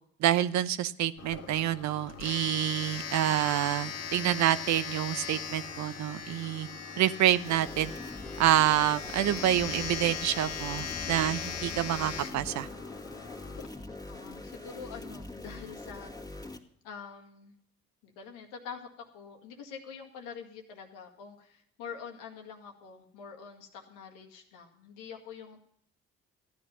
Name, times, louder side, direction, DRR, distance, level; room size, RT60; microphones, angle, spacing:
voice 1, 0.2-6.7 7.0-7.9 8.4-12.7, right 12 dB, 65° right, 14 dB, 0.7 m, -27 dB
Domestic sounds home sounds, 1.2-13.6, left 6 dB, 55° left, 1.9 m, -39 dB
sound 1, 7.4-16.6, left 2 dB, 10° left, 2.1 m, -43 dB
voice 2, 14.1-16.1 16.8-17.5 18.0-25.7, left 6 dB, 80° left, 2 dB, 2.0 m, -45 dB
14.5 x 10.5 x 5.5 m, 0.69 s
hypercardioid pair, 55°, 31 cm